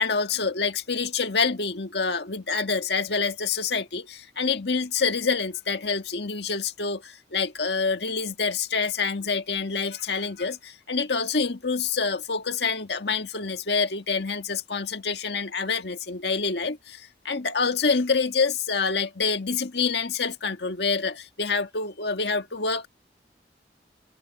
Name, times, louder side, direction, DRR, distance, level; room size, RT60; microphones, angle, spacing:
voice 1, 0.0-22.9, left 4 dB, 70° left, 1.7 m, -27 dB
head